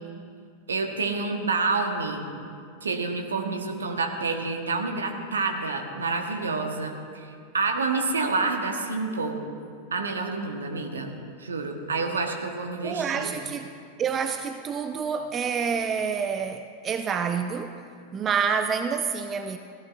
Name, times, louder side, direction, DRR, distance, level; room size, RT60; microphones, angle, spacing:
voice 1, 0.7-2.3 2.8-7.3 7.5-9.4 9.9-11.1 11.4-13.3, right 3 dB, 70° right, 4 dB, 1.2 m, -28 dB
voice 2, 12.8-13.7 14.0-17.8 18.1-19.6, right 6 dB, 25° right, 9 dB, 0.4 m, -28 dB
16.5 x 15.0 x 2.6 m, 2.3 s
figure-of-eight pair, 90°, 0 cm